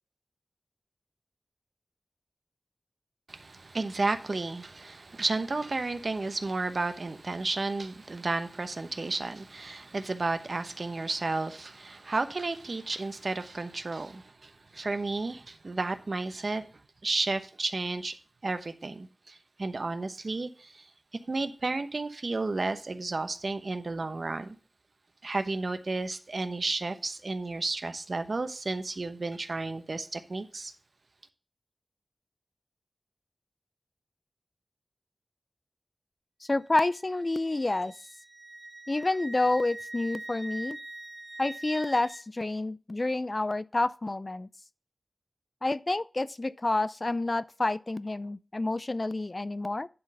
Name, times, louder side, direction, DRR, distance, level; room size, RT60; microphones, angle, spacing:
voice 1, 3.3-16.7 17.0-18.1 18.4-20.8 21.3-24.6 25.2-30.7, right 3 dB, 65° right, 0.9 m, -32 dB
voice 2, 36.4-37.9 38.9-40.8 41.4-44.5 45.6-49.9, left 2 dB, 45° left, 0.4 m, -29 dB
Wind instrument woodwind instrument, 36.4-42.2, right 2 dB, 35° right, 1.0 m, -43 dB
10.5 x 3.9 x 5.4 m
cardioid pair, 40°, 0 cm